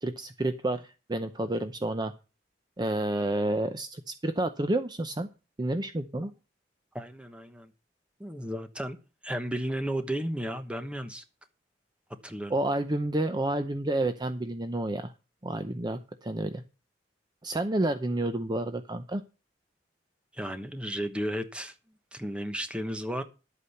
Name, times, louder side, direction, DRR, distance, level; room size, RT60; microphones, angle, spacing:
voice 1, 0.0-2.1 2.8-5.3 5.6-6.3 12.5-15.1 15.4-16.6 17.4-19.2, right 1 dB, 25° right, 0.7 m, -30 dB
voice 2, 6.9-7.7 8.2-9.0 9.2-11.2 12.2-12.5 20.3-21.7 22.1-23.2, equal, 5° right, 1.1 m, -33 dB
11.5 x 8.4 x 5.7 m
head